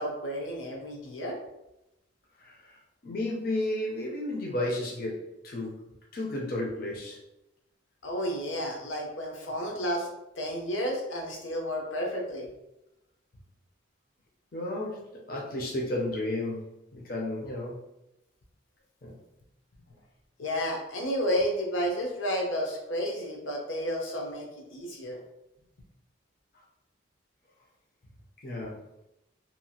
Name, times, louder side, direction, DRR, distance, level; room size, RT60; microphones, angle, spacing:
voice 1, 0.0-1.4 8.0-10.1 10.4-12.5 20.4-25.2, equal, 80° left, 0 dB, 0.7 m, -31 dB
voice 2, 2.4-2.8 3.0-5.9 6.1-7.2 14.5-17.8 19.0-19.1 28.4-28.8, left 1 dB, 45° left, -2 dB, 0.6 m, -33 dB
2.8 x 2.4 x 2.8 m, 0.88 s
head